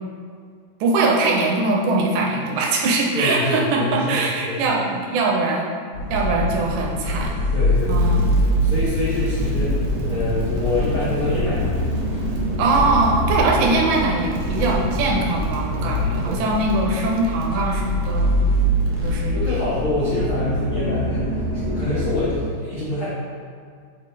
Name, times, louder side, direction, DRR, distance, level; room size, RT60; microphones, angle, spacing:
voice 1, 0.8-5.7 6.1-7.3 7.9-8.3 12.6-18.3 19.0-19.6, right 3 dB, 90° right, -1 dB, 2.7 m, -21 dB
voice 2, 3.1-4.6 7.5-8.1 8.6-9.8 10.1-11.8 15.6-16.4 19.3-23.1, left 2 dB, 90° left, -10 dB, 1.1 m, -26 dB
sound 1, 5.9-22.4, equal, 60° left, 0.9 m, -23 dB
Crackle, 7.7-19.3, right 2 dB, 70° right, 2.0 m, -38 dB
6.7 x 3.9 x 3.8 m, 2.1 s
omnidirectional pair, 4.3 m